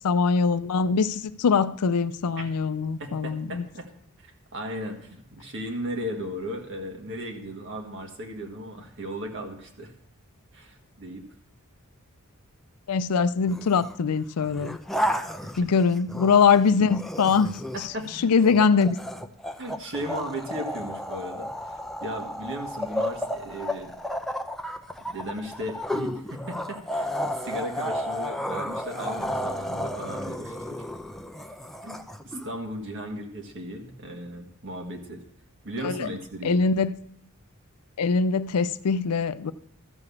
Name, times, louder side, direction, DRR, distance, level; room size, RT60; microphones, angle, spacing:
voice 1, 0.0-3.7 12.9-14.8 15.6-17.6 18.2-19.0 35.8-36.1 36.4-36.9 38.0-39.5, left 5 dB, 90° left, 0.5 m, -22 dB
voice 2, 3.0-3.9 4.2-9.9 10.5-11.3 15.0-15.2 17.7-18.3 19.6-23.9 25.0-30.7 31.8-35.2 35.6-36.6, equal, 60° right, 1.8 m, -36 dB
sound 1, 13.5-13.9 14.4-16.5 16.9-32.5, left 1 dB, ahead, 0.6 m, -32 dB
13.5 x 4.9 x 7.2 m
head